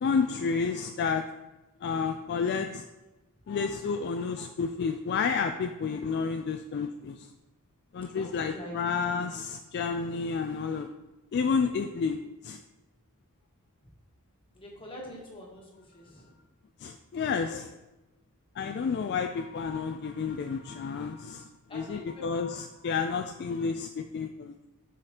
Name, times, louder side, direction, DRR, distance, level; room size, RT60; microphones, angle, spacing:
voice 1, 0.0-1.2 1.8-2.9 3.5-7.3 7.9-10.9 11.3-12.6 16.8-17.7 18.6-21.5 21.7-24.6, left 5 dB, 50° left, 6 dB, 0.3 m, -30 dB
voice 2, 8.1-8.8 14.5-16.4 21.7-22.6, equal, 25° left, -2 dB, 1.4 m, -45 dB
8.9 x 5.0 x 2.8 m, 1.0 s
head